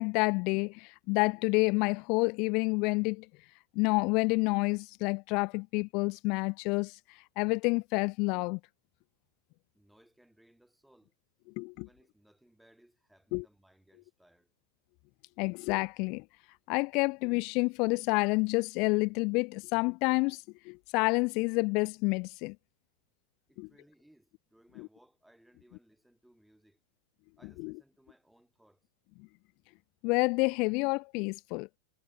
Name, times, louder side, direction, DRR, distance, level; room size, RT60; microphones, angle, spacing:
voice 1, 0.0-3.3 3.8-8.6 11.6-11.9 13.3-13.4 15.4-16.2 16.7-22.6 23.6-23.7 27.6-27.7 30.0-31.7, left 29 dB, 45° left, 0.3 m, -29 dB
voice 2, 9.7-11.2 11.7-14.5 23.5-26.8 27.4-28.9, right 1 dB, ahead, 5.4 m, -64 dB
supercardioid pair, 155°, 0 cm